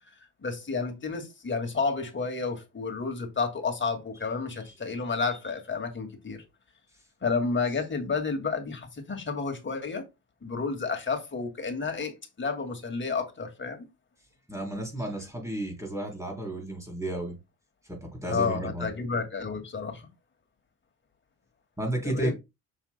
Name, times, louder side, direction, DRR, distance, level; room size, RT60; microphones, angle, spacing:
voice 1, 0.4-6.4 7.2-10.0 10.4-13.9 18.3-20.1 22.0-22.3, left 4 dB, 30° left, 2.1 m, -31 dB
voice 2, 14.5-17.4 17.9-18.9 21.8-22.3, right 1 dB, 5° right, 3.5 m, -32 dB
7.1 x 6.7 x 2.2 m
supercardioid pair, 75°, 41 cm